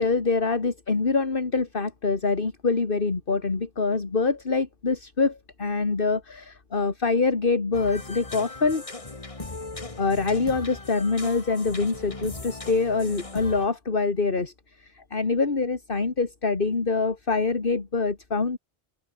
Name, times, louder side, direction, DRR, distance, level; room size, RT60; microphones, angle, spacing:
voice 1, 0.0-8.8 10.0-14.5 14.8-18.6, left 4 dB, 55° left, 2.2 m, -25 dB
sound 1, 7.7-13.7, left 2 dB, 30° left, 1.9 m, -38 dB
open air
omnidirectional pair, 1.1 m